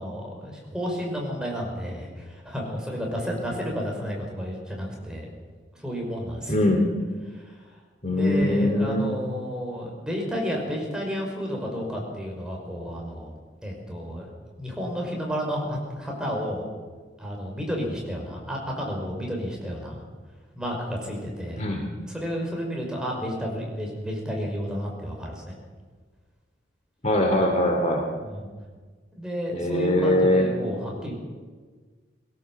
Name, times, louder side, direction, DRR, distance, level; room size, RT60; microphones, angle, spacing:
voice 1, 0.0-5.3 5.7-6.5 7.3-7.5 8.1-13.3 13.6-14.3 14.6-16.7 17.2-20.0 20.6-21.7 22.0-25.6 28.2-28.5 29.1-31.1, equal, 5° right, -1 dB, 5.3 m, -31 dB
voice 2, 6.5-6.9 8.0-9.2 21.6-21.8 27.0-28.0 29.5-30.5, left 1 dB, 35° left, 2 dB, 2.5 m, -22 dB
21.5 x 17.5 x 7.5 m, 1.4 s
head